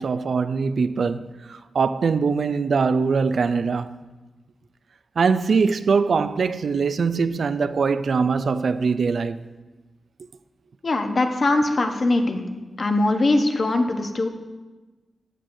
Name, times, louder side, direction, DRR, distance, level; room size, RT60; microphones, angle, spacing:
voice 1, 0.0-4.0 5.2-9.4, right 5 dB, 70° right, 0.3 m, -22 dB
voice 2, 10.8-12.4 12.8-14.3, left 2 dB, 50° left, 0.8 m, -21 dB
15.0 x 6.4 x 2.6 m
wide cardioid pair, 85°, 0 cm